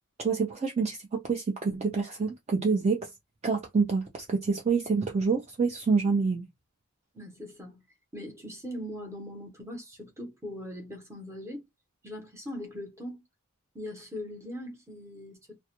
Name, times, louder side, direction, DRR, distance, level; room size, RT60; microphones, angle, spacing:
voice 1, 0.2-3.1 3.4-6.4, right 4 dB, 30° right, 0.4 m, -27 dB
voice 2, 7.1-7.8 8.1-11.6 12.0-13.2 13.7-15.6, left 1 dB, 15° right, 0.7 m, -40 dB
2.2 x 2.1 x 2.8 m
head